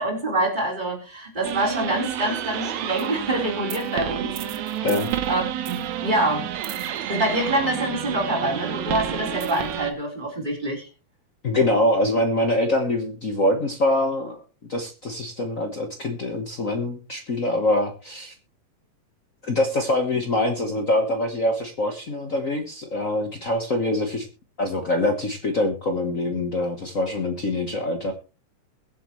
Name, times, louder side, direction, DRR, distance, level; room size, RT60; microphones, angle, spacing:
voice 1, 0.0-4.4 5.3-6.5 7.1-10.9, right 1 dB, 15° right, -1 dB, 4.0 m, -26 dB
sound 1, 1.4-9.9, right 10 dB, 70° right, 2.2 m, -30 dB
voice 2, 11.4-14.4 14.7-18.3 19.4-24.3 24.6-28.1, left 1 dB, 75° left, 4 dB, 0.7 m, -24 dB
22.0 x 7.7 x 3.1 m, 0.32 s
omnidirectional pair, 3.6 m